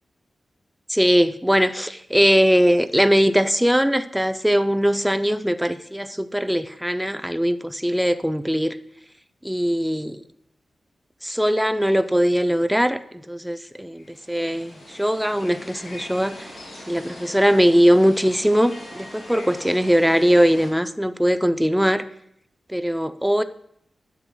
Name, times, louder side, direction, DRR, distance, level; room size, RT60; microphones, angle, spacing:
voice 1, 0.9-8.8 9.4-10.2 11.2-13.0 13.3-16.5 16.9-22.0 22.7-23.4, equal, 5° right, 11 dB, 0.4 m, -20 dB
sound 1, 13.9-20.7, left 1 dB, 75° left, 3.2 m, -41 dB
10.5 x 7.6 x 2.3 m, 0.74 s
wide cardioid pair, 90°, 0 cm